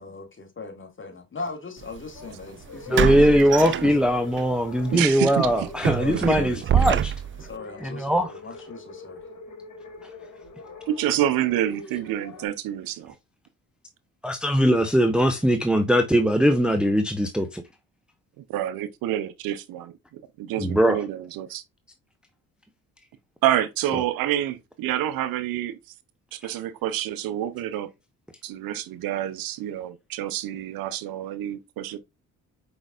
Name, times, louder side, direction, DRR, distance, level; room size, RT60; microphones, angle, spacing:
voice 1, 0.0-3.0 3.3-4.1 6.0-7.0 7.4-9.3, left 3 dB, 35° left, 2.0 m, -39 dB
sound 1, 1.8-2.0 2.9-4.4 4.8-5.0 5.4-7.5, right 9 dB, 35° right, 0.4 m, -25 dB
sound 2, 2.1-12.5, left 2 dB, 60° left, 2.0 m, -43 dB
voice 2, 2.9-7.1 7.8-8.3 14.2-17.6 20.6-21.0 23.9-24.0, equal, 5° right, 0.7 m, -21 dB
voice 3, 4.9-5.5 6.1-6.6 10.9-13.1 18.4-21.6 23.4-25.8 26.3-27.9 28.4-32.0, right 12 dB, 80° right, 0.7 m, -28 dB
5.0 x 4.0 x 2.4 m
supercardioid pair, 60°, 34 cm